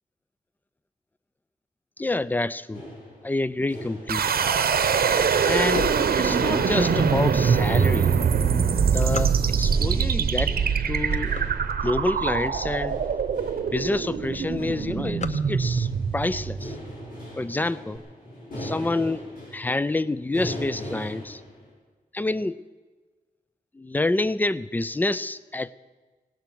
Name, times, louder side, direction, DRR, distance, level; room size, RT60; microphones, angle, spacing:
voice 1, 2.0-2.8 3.2-4.4 5.4-5.9 6.2-8.2 8.9-9.3 9.6-10.5 10.9-11.3 11.8-13.0 13.7-16.8 17.4-18.0 18.6-19.3 19.5-21.4 22.1-22.6 23.7-25.7, left 2 dB, 10° left, 18 dB, 0.4 m, -27 dB
sound 1, 2.7-21.7, equal, 65° left, 5.7 m, -41 dB
sound 2, 4.1-17.0, right 6 dB, 80° right, 0.9 m, -23 dB
sound 3, 5.0-6.8 7.4-7.5 8.1-9.9 10.5-10.7 11.0-12.5 13.0-13.1 13.4-13.5 13.8-14.1 14.4-16.0, left 4 dB, 50° left, 0.8 m, -37 dB
17.5 x 11.5 x 6.1 m, 1.3 s
wide cardioid pair, 105°, 15 cm